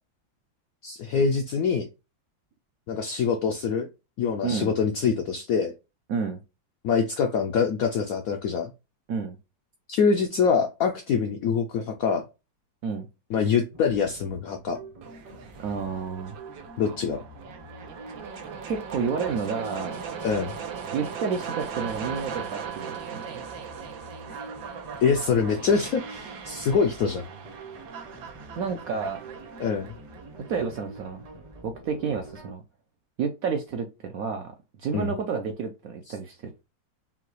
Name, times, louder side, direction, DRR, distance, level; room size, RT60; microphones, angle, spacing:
voice 1, 0.8-1.9 2.9-3.9 4.2-5.7 6.8-8.7 9.9-12.2 13.3-14.8 16.8-17.2 20.2-20.5 25.0-27.2 29.6-29.9 34.9-35.1, left 6 dB, 80° left, 5 dB, 0.8 m, -24 dB
voice 2, 6.1-6.4 9.1-9.4 12.8-13.1 15.6-16.4 18.7-20.0 20.9-23.4 24.3-24.4 28.6-29.2 30.5-31.2 31.6-32.6 33.2-34.5 34.8-36.6, right 5 dB, 70° right, 4 dB, 0.8 m, -30 dB
sound 1, 13.7-32.5, right 2 dB, 45° right, 0.4 m, -46 dB
sound 2, 15.0-31.0, right 7 dB, 90° right, 1.6 m, -39 dB
5.6 x 2.3 x 3.1 m, 0.27 s
omnidirectional pair, 2.0 m